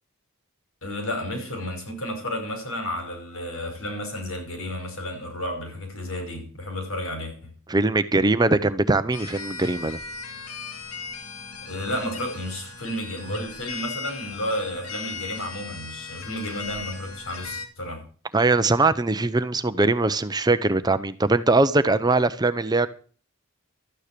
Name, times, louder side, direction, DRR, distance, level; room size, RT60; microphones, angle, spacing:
voice 1, 0.8-7.5 11.7-18.0, left 1 dB, 70° left, 5.4 m, -32 dB
voice 2, 7.7-10.0 18.3-22.9, right 2 dB, 20° right, 0.7 m, -21 dB
sound 1, 9.1-17.7, left 4 dB, 85° left, 2.2 m, -38 dB
13.0 x 9.6 x 6.8 m
head